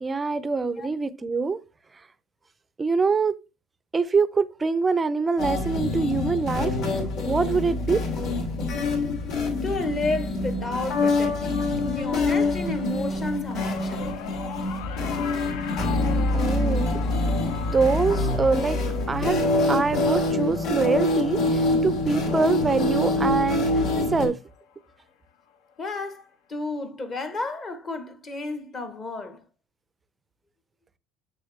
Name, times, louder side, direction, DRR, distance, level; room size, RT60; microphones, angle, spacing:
voice 1, 0.0-1.6 2.8-3.3 3.9-6.8 7.2-8.0 16.3-16.9 17.5-18.8 19.1-19.4 19.7-23.7 24.1-24.4, right 4 dB, 15° right, 0.5 m, -24 dB
sound 1, 5.4-24.3, left 2 dB, 50° left, 2.5 m, -25 dB
voice 2, 9.6-14.2 25.8-29.4, left 2 dB, 20° left, 0.9 m, -32 dB
sound 2, 13.5-23.9 24.3-24.7 25.8-25.9, left 7 dB, 70° left, 0.9 m, -39 dB
7.2 x 6.4 x 3.2 m
cardioid pair, 170°, 0 cm